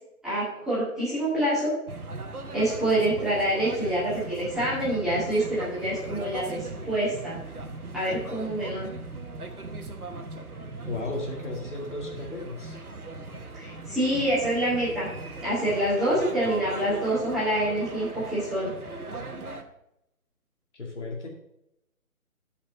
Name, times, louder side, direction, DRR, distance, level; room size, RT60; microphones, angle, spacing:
voice 1, 0.2-1.7 2.5-7.4 7.9-8.9 13.5-15.1 15.4-18.7, right 1 dB, ahead, -13 dB, 2.0 m, -26 dB
sound 1, 1.9-19.6, right 3 dB, 85° right, 1.4 m, -39 dB
voice 2, 10.9-12.8 20.7-21.3, left 2 dB, 55° left, 0 dB, 2.2 m, -34 dB
8.6 x 5.4 x 5.4 m, 0.80 s
figure-of-eight pair, 150°, 43 cm